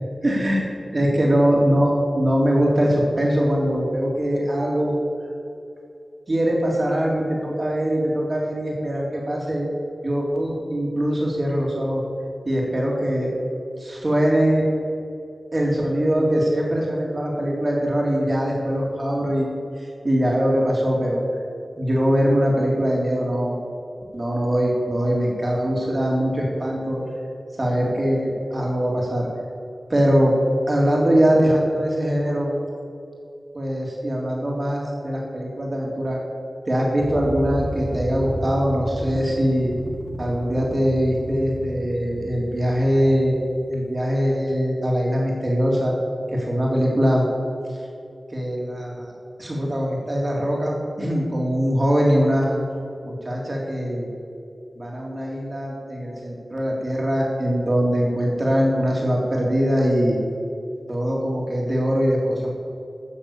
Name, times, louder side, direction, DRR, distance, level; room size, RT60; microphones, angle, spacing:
voice 1, 0.2-4.9 6.3-9.7 10.0-12.0 12.4-13.3 13.8-14.7 15.5-19.5 19.8-21.2 21.8-23.5 24.1-27.0 27.6-29.3 29.9-30.4 30.7-32.5 33.5-36.2 36.7-39.7 40.2-43.4 43.7-45.9 46.3-47.3 48.3-49.1 49.4-52.6 53.0-54.1 54.7-60.2 60.9-62.5, equal, 40° right, -2 dB, 3.2 m, -22 dB
sound 1, 37.0-43.7, equal, 10° left, 1.4 m, -33 dB
14.0 x 7.0 x 7.2 m, 2.6 s
wide cardioid pair, 90°, 0 cm